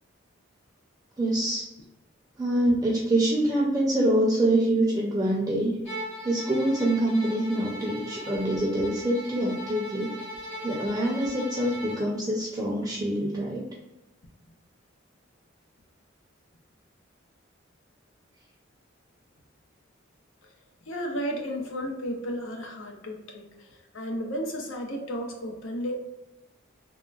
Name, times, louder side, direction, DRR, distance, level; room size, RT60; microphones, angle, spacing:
voice 1, 1.2-1.7 2.4-5.8 6.2-10.2 10.6-13.6, right 1 dB, 20° right, -4 dB, 0.5 m, -25 dB
Bowed string instrument, 5.8-12.1, equal, 75° left, 1.3 m, -39 dB
voice 2, 20.9-25.9, equal, 90° left, 1 dB, 0.7 m, -33 dB
3.7 x 2.1 x 2.3 m, 1.0 s
head